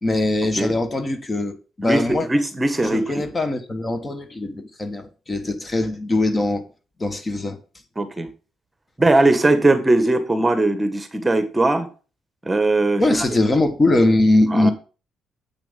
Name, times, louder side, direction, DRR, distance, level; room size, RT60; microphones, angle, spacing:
voice 1, 0.0-2.3 2.8-6.6 7.0-7.6 13.0-14.7, left 2 dB, 25° left, 1.4 m, -21 dB
voice 2, 2.3-3.3 8.0-8.3 9.0-11.9 12.4-13.3 14.5-14.7, right 2 dB, 15° right, 1.5 m, -19 dB
8.3 x 6.1 x 5.2 m
cardioid pair, 90°, 0 cm